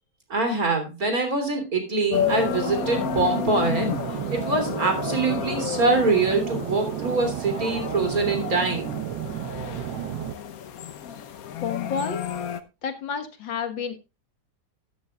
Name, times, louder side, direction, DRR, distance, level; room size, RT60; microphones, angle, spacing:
voice 1, 0.3-3.9 4.3-9.0, right 3 dB, 50° right, 6 dB, 3.6 m, -24 dB
sound 1, 2.1-12.6, left 9 dB, 60° left, 1.2 m, -32 dB
sound 2, 2.1-10.3, right 11 dB, 75° right, 1.5 m, -32 dB
voice 2, 11.6-12.2 12.8-14.0, left 6 dB, 85° left, 8 dB, 2.2 m, -30 dB
13.0 x 12.5 x 2.4 m, 0.27 s
omnidirectional pair, 2.0 m